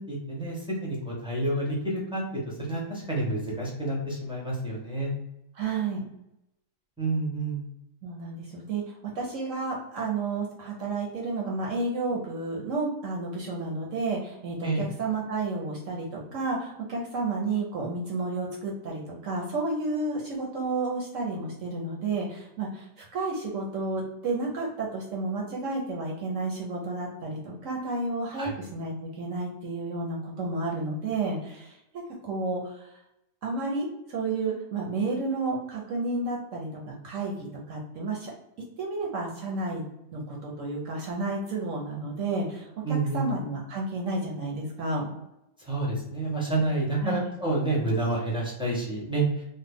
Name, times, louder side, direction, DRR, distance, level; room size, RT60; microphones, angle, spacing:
voice 1, 0.0-5.1 7.0-7.6 14.6-14.8 28.3-28.5 42.8-43.3 45.6-49.4, right 2 dB, 5° right, -6 dB, 0.4 m, -29 dB
voice 2, 5.5-6.1 8.0-31.8 32.2-32.9 33.4-38.3 38.8-39.8 40.1-45.1 47.0-47.3, right 3 dB, 65° right, -1 dB, 0.9 m, -31 dB
3.1 x 2.1 x 3.4 m, 0.85 s
omnidirectional pair, 1.8 m